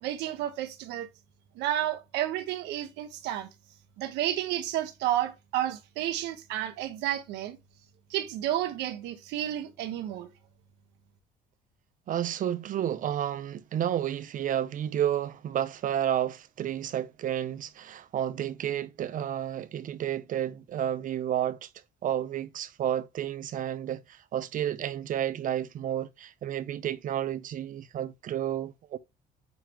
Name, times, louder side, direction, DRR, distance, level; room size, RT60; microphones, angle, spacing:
voice 1, 0.0-1.1 1.6-3.5 4.0-7.6 8.1-10.3, right 12 dB, 90° right, 1.1 m, -31 dB
voice 2, 12.1-21.7 22.0-29.0, right 10 dB, 55° right, 0.7 m, -31 dB
9.2 x 3.7 x 2.9 m
cardioid pair, 110°, 17 cm